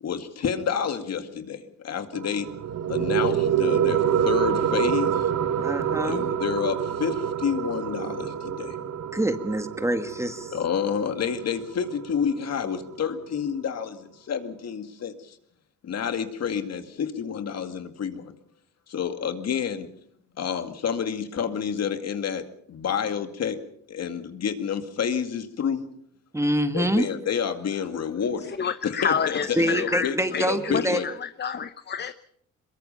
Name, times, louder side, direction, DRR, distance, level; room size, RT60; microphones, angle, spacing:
voice 1, 0.0-2.5 2.9-5.3 6.0-8.8 10.5-15.4 15.8-18.3 18.9-19.9 20.4-23.6 23.9-25.8 26.7-28.5 28.8-31.1, left 7 dB, 55° left, 2.2 m, -29 dB
sound 1, 2.1-13.1, right 9 dB, 60° right, 1.4 m, -27 dB
voice 2, 5.6-6.2 9.1-10.5 26.3-27.1 29.6-31.0, right 1 dB, 10° right, 1.8 m, -25 dB
voice 3, 28.6-32.1, left 7 dB, 35° left, 0.9 m, -29 dB
23.0 x 22.0 x 5.6 m
cardioid pair, 90°, 30 cm